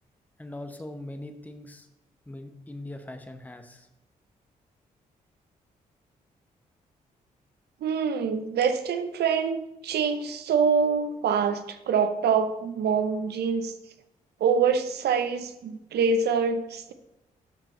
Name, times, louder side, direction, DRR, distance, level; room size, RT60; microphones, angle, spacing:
voice 1, 0.4-1.9 2.3-3.9, left 1 dB, 10° left, 7 dB, 1.0 m, -41 dB
voice 2, 7.8-13.7 14.4-16.9, right 6 dB, 70° right, 10 dB, 0.7 m, -25 dB
11.0 x 6.0 x 3.1 m, 0.94 s
hypercardioid pair, 45°, 18 cm